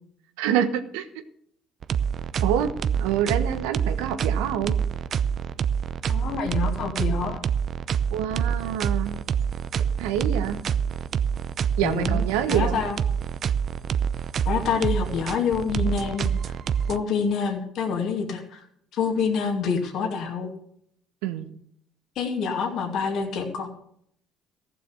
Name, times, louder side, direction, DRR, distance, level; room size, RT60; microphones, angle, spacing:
voice 1, 0.4-1.1 2.4-2.7 3.0-4.7 8.1-9.1 10.0-10.6 11.8-12.8 21.2-21.5, right 9 dB, 80° right, 9 dB, 1.2 m, -26 dB
sound 1, 1.8-17.0, right 7 dB, 55° right, 0.6 m, -26 dB
voice 2, 6.1-7.4 11.8-12.2 12.5-13.0 14.4-16.5 16.9-18.6 18.9-20.5 22.2-23.7, left 6 dB, 65° left, 3 dB, 2.3 m, -27 dB
15.0 x 6.9 x 8.1 m, 0.69 s
hypercardioid pair, 60°, 0 cm